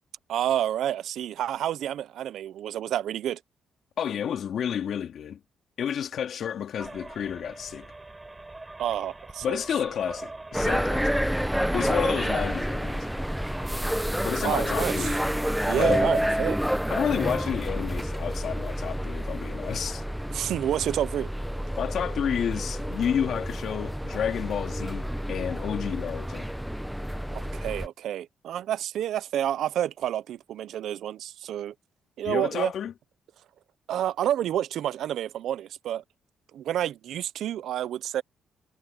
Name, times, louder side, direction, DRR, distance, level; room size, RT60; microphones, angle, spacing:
voice 1, 0.3-3.4 8.8-9.6 14.4-15.1 15.7-16.6 20.3-21.3 27.3-31.7 32.2-32.7 33.9-36.0 36.5-38.2, right 11 dB, 75° right, 0.6 m, -29 dB
voice 2, 4.0-5.4 5.8-7.9 9.4-11.1 11.7-13.1 14.2-15.2 15.7-16.0 16.9-20.0 21.8-26.5 32.2-32.9, left 8 dB, 65° left, 2.6 m, -30 dB
sound 1, 6.8-17.8, right 2 dB, 15° right, 7.9 m, -45 dB
sound 2, 10.5-27.9, equal, ahead, 0.8 m, -29 dB
cardioid pair, 90°, 0 cm